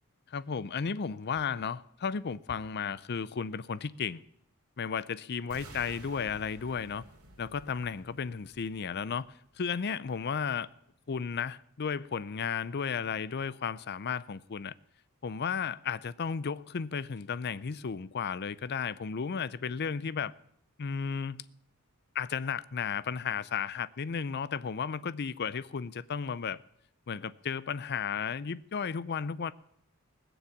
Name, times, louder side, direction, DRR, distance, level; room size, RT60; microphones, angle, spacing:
voice 1, 0.3-4.2 4.8-7.0 7.4-9.3 9.6-10.7 11.1-14.7 15.2-20.3 20.8-21.4 22.1-26.6 27.1-29.5, left 6 dB, 50° left, 0.5 m, -34 dB
sound 1, 5.5-9.5, right 2 dB, 80° right, 2.6 m, -52 dB
20.0 x 7.1 x 7.3 m
head